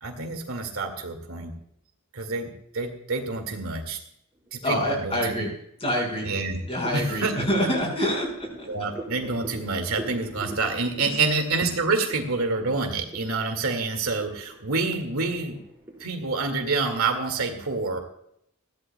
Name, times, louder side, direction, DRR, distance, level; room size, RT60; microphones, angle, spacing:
voice 1, 0.0-1.5 2.1-4.0 4.5-5.3 6.2-6.6 6.9-7.3 8.7-15.6 16.0-18.0, right 3 dB, 80° right, 4 dB, 2.1 m, -27 dB
sound 1, 4.4-4.9 5.3-16.1, right 1 dB, 10° right, 4.6 m, -43 dB
voice 2, 4.6-5.5 5.8-6.3 6.7-8.7 11.1-11.2, equal, 30° left, 0 dB, 5.2 m, -26 dB
20.5 x 15.0 x 2.3 m, 0.72 s
head